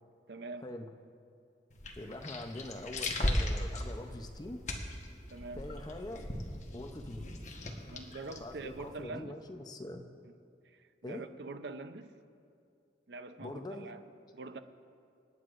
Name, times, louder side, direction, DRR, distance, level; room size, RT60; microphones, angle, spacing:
voice 1, 0.3-0.7 5.3-5.7 7.9-9.4 10.6-12.1 13.1-14.0 14.3-14.6, right 3 dB, 75° right, 9 dB, 0.6 m, -44 dB
sound 1, 1.7-9.0, left 1 dB, 40° left, 1.2 m, -38 dB
voice 2, 2.0-4.6 5.5-6.3 6.7-7.3 8.4-10.1 11.0-11.2 13.4-13.9, left 1 dB, 20° left, 5 dB, 0.6 m, -43 dB
28.5 x 9.4 x 2.5 m, 2.4 s
head